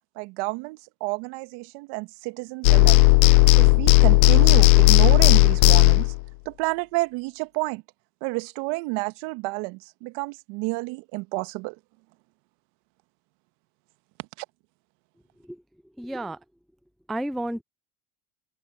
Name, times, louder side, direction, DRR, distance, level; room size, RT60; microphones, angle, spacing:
voice 1, 0.1-3.0 3.6-6.1 6.4-7.8 8.2-11.8 14.4-14.5, right 26 dB, 65° right, 1.6 m, -30 dB
sound 1, 2.6-6.2, left 28 dB, 65° left, 0.5 m, -15 dB
voice 2, 16.0-16.4 17.1-17.6, right 1 dB, ahead, 0.4 m, -31 dB
open air
hypercardioid pair, 85°, 44 cm